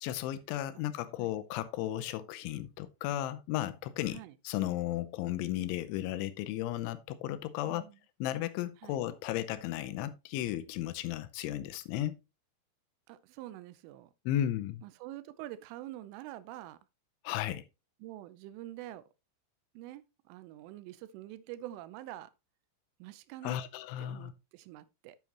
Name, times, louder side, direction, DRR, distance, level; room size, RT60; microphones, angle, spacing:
voice 1, 0.0-7.8 8.2-12.2 14.3-14.8 17.2-17.6 23.4-24.3, left 13 dB, 80° left, 3.0 m, -34 dB
voice 2, 7.7-8.0 8.8-9.0 13.1-14.1 14.8-16.8 18.0-19.0 19.7-22.3 23.0-23.6 24.0-25.2, right 14 dB, 85° right, 3.3 m, -46 dB
9.2 x 8.5 x 2.9 m
omnidirectional pair, 5.6 m